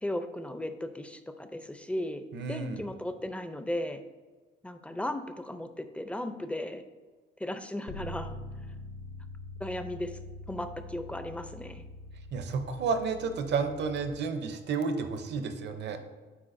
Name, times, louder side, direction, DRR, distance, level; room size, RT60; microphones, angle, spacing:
voice 1, 0.0-4.0 4.6-6.8 7.4-8.4 9.6-10.2 10.5-11.8, left 1 dB, 5° left, 8 dB, 0.4 m, -36 dB
voice 2, 2.3-2.8 12.3-16.0, right 5 dB, 60° right, 8 dB, 0.7 m, -31 dB
Bass guitar, 7.9-14.1, left 1 dB, 70° left, 0.7 m, -44 dB
8.4 x 4.6 x 2.6 m, 1.3 s
cardioid pair, 90°, 20 cm